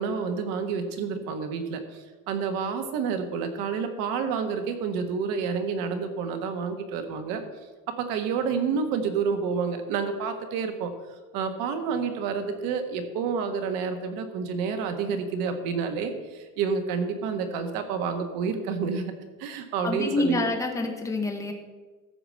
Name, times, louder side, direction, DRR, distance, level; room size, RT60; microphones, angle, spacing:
voice 1, 0.0-7.4 8.0-10.9 11.3-19.1 19.4-20.4, right 5 dB, 75° right, 7 dB, 1.6 m, -29 dB
voice 2, 19.8-21.5, left 2 dB, 10° left, 2 dB, 1.1 m, -27 dB
14.0 x 5.0 x 7.5 m, 1.3 s
cardioid pair, 170°, 34 cm